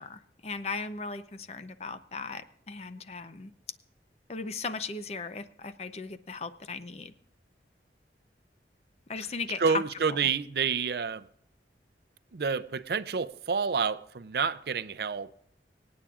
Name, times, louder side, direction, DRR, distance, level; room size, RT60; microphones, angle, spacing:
voice 1, 0.0-3.5 4.3-7.1 9.1-9.8, left 4 dB, 35° left, 0.6 m, -37 dB
voice 2, 9.6-11.3 12.3-15.3, right 5 dB, 65° right, 0.5 m, -29 dB
26.0 x 8.6 x 2.4 m
head